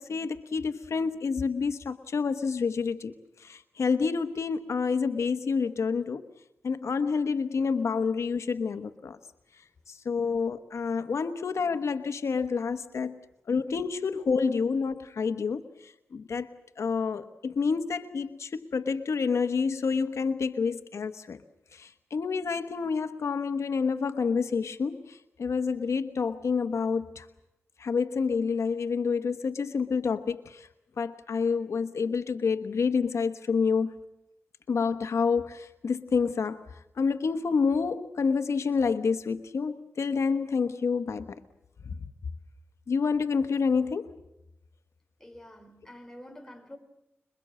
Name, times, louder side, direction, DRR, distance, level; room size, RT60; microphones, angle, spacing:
voice 1, 0.0-6.3 6.6-9.2 9.9-13.2 13.5-16.5 16.8-21.4 21.7-27.3 27.8-30.7 31.0-34.0 34.7-36.6 37.0-41.4 41.8-41.9 42.9-44.2, left 5 dB, 85° left, 1.2 m, -28 dB
voice 2, 45.2-46.8, left 1 dB, 10° left, 5.0 m, -47 dB
27.0 x 22.5 x 7.7 m
wide cardioid pair, 80°, 5 cm